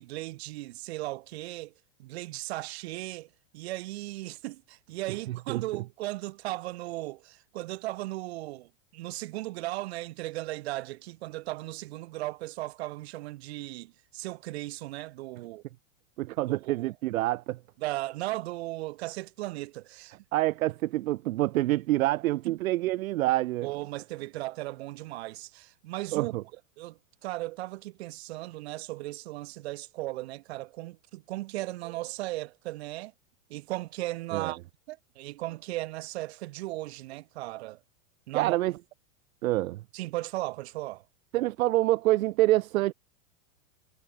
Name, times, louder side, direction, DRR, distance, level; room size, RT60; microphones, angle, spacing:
voice 1, 0.0-1.7 2.0-3.3 3.5-15.6 16.5-16.9 17.8-20.1 22.4-22.6 23.6-26.4 26.8-33.1 33.5-34.6 34.9-37.8 38.3-38.6 39.9-41.0, right 18 dB, 50° right, 6.4 m, -36 dB
voice 2, 5.1-5.8 16.2-17.6 20.3-23.7 26.1-26.4 34.3-34.5 38.3-38.7 39.4-39.8 41.3-42.9, right 17 dB, 75° right, 0.8 m, -27 dB
supercardioid pair, 180°, 41 cm